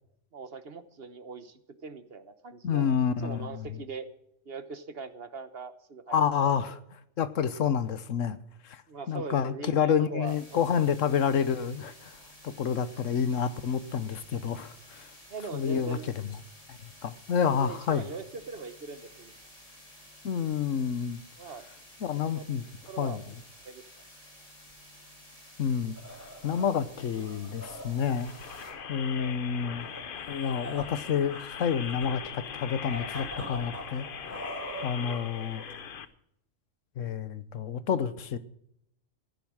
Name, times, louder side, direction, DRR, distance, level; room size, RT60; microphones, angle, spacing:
voice 1, 0.3-2.9 3.2-4.1 4.4-6.4 6.7-6.8 8.9-10.7 15.3-16.0 17.4-19.3 21.4-21.7 22.3-22.4 22.9-23.2 23.6-23.8 29.1-29.4 34.9-35.2, right 4 dB, 50° right, 1.3 m, -41 dB
voice 2, 2.6-3.5 6.1-6.8 7.2-8.4 8.7-8.8 9.1-12.2 12.4-15.1 15.5-16.0 16.7-18.0 20.2-21.2 22.0-22.6 23.0-23.2 25.6-25.9 26.4-28.3 28.9-29.9 30.3-34.4 34.8-35.6 37.0-38.4, left 7 dB, 80° left, 1.3 m, -29 dB
sound 1, 10.2-28.7, left 1 dB, 30° left, 3.4 m, -53 dB
sound 2, 25.7-36.0, equal, 10° right, 7.4 m, -44 dB
sound 3, 28.1-36.0, left 7 dB, 50° left, 0.9 m, -41 dB
15.0 x 10.5 x 6.3 m
omnidirectional pair, 1.3 m